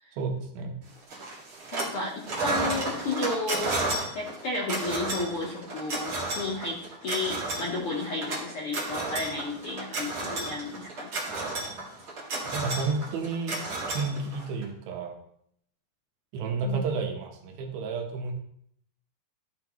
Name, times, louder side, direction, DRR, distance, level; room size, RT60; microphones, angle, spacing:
voice 1, 0.1-0.7 12.5-13.6 13.9-15.2 16.3-18.3, right 4 dB, 85° right, 3 dB, 3.0 m, -31 dB
sound 1, 1.1-2.0 2.2-14.6, right 2 dB, 40° right, 2.4 m, -32 dB
voice 2, 1.7-3.8 4.1-11.1 16.6-16.8, left 2 dB, 85° left, -3 dB, 1.2 m, -32 dB
13.0 x 5.8 x 3.0 m, 0.69 s
omnidirectional pair, 4.2 m